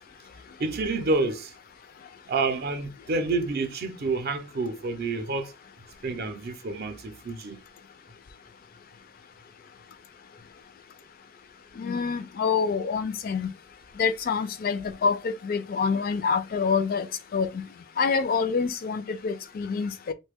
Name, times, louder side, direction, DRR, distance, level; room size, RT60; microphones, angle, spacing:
voice 1, 0.6-1.5 2.3-5.5 6.0-7.6, right 3 dB, 50° right, 0.5 m, -28 dB
voice 2, 11.8-13.5 14.0-17.1 17.3-17.6 18.0-20.1, left 5 dB, 45° left, 0.3 m, -26 dB
3.1 x 2.1 x 3.4 m
head